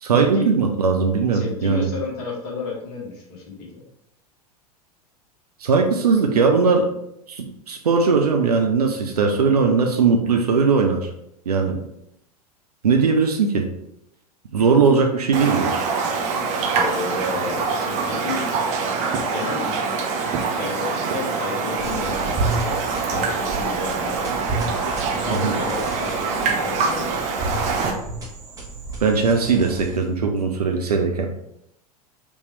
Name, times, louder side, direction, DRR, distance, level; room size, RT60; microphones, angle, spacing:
voice 1, 0.0-1.9 5.6-6.9 7.3-11.1 11.5-11.8 12.8-13.7 14.5-15.7 25.3-25.5 29.0-31.3, right 5 dB, 75° right, 3 dB, 0.6 m, -19 dB
voice 2, 1.3-3.8 16.7-18.4 19.3-19.8 20.5-22.8 23.1-24.2 25.2-27.2, left 3 dB, 50° left, -3 dB, 1.5 m, -31 dB
Raindrop, 15.3-27.9, right 4 dB, 35° right, 0.8 m, -24 dB
sound 1, 21.8-30.2, right 2 dB, 15° right, 1.6 m, -32 dB
5.2 x 3.3 x 3.2 m, 0.77 s
figure-of-eight pair, 90°, 20 cm